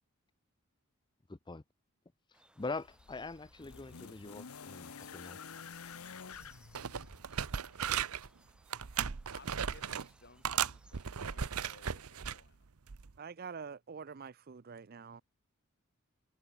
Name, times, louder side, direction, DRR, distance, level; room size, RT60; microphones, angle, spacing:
voice 1, 1.3-1.6 2.6-5.4, left 3 dB, 20° left, 0.6 m, -43 dB
sound 1, 2.3-11.4, right 1 dB, 5° right, 3.1 m, -66 dB
sound 2, 2.6-7.8 8.9-9.0, left 6 dB, 80° left, 1.0 m, -50 dB
sound 3, 6.3-6.5 6.7-8.3 8.7-10.1 10.4-12.4 12.9-13.1, right 8 dB, 85° right, 0.8 m, -36 dB
voice 2, 7.2-8.1 9.2-12.7, left 3 dB, 50° left, 5.5 m, -61 dB
voice 3, 13.2-15.2, right 6 dB, 45° right, 0.5 m, -46 dB
head